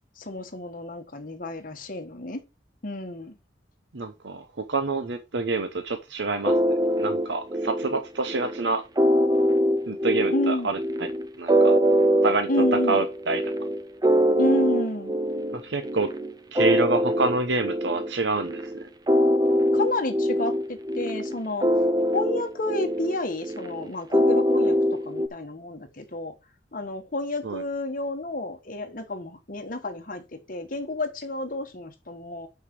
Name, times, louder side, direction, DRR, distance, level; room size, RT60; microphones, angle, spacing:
voice 1, 0.2-2.4 2.8-3.3 10.3-10.7 12.5-13.0 14.4-15.2 19.7-21.7 22.1-26.3 26.7-32.5, left 1 dB, 50° left, 1.4 m, -30 dB
voice 2, 3.9-6.6 6.9-8.8 9.9-11.1 11.4-11.8 12.2-12.5 12.9-13.4 15.5-16.1 16.5-18.7 27.4-27.6, right 3 dB, 80° right, 0.9 m, -27 dB
sound 1, 6.4-25.3, equal, 20° right, 0.6 m, -23 dB
5.9 x 5.8 x 6.1 m
head